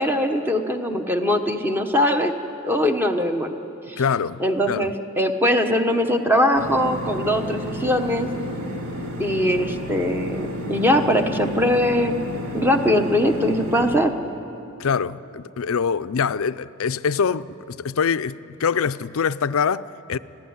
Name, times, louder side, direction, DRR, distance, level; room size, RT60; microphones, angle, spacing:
voice 1, 0.0-2.3 2.6-3.5 3.9-4.0 4.4-8.3 9.2-12.2 12.5-14.1, left 1 dB, 10° right, 1.1 m, -21 dB
voice 2, 4.0-4.9 14.8-20.2, left 6 dB, 70° left, 0.5 m, -24 dB
sound 1, 6.5-14.0, equal, 75° right, 2.5 m, -31 dB
25.5 x 15.5 x 9.6 m
head